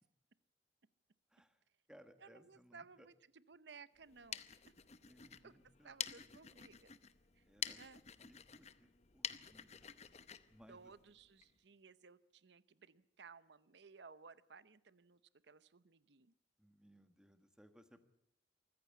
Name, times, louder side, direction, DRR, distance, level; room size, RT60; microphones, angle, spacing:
voice 1, 1.3-3.1 5.1-6.7 7.4-7.8 8.2-9.9 10.5-10.9 16.6-18.0, equal, 5° right, 8 dB, 1.4 m, -65 dB
voice 2, 2.2-4.4 4.7-4.8 5.4-5.6 5.8-6.9 7.3-7.5 7.8-8.0 10.7-16.3, right 5 dB, 70° right, 16 dB, 0.8 m, -59 dB
sound 1, 4.0-11.5, left 8 dB, 35° left, 0.8 m, -49 dB
24.0 x 14.5 x 8.3 m, 0.78 s
head